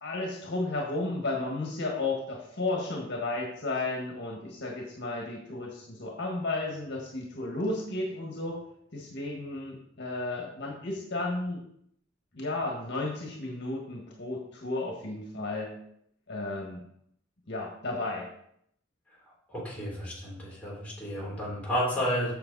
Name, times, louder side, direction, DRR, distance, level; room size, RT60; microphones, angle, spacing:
voice 1, 0.0-8.6 8.9-11.6 12.3-15.7 16.3-16.8 17.5-18.3, left 2 dB, 60° left, -1 dB, 1.7 m, -33 dB
voice 2, 19.5-22.3, equal, 5° left, -6 dB, 3.5 m, -31 dB
7.9 x 6.8 x 4.1 m, 0.71 s
head